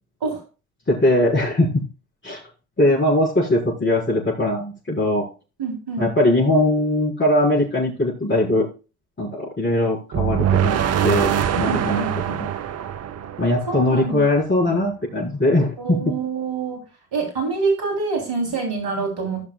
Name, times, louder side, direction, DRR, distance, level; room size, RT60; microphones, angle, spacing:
voice 1, 0.9-1.7 2.2-2.4 2.8-5.3 6.0-8.7 9.2-12.1 12.4-12.5 13.4-16.0, left 1 dB, 25° left, -5 dB, 4.5 m, -20 dB
voice 2, 5.6-6.1 11.7-12.2 13.7-14.2 14.6-14.8 15.8-16.8 17.1-19.4, right 4 dB, 60° right, 2 dB, 3.3 m, -26 dB
sound 1, 10.1-14.2, right 9 dB, 35° right, 0.7 m, -23 dB
16.5 x 5.8 x 2.3 m, 0.32 s
figure-of-eight pair, 50°, 43 cm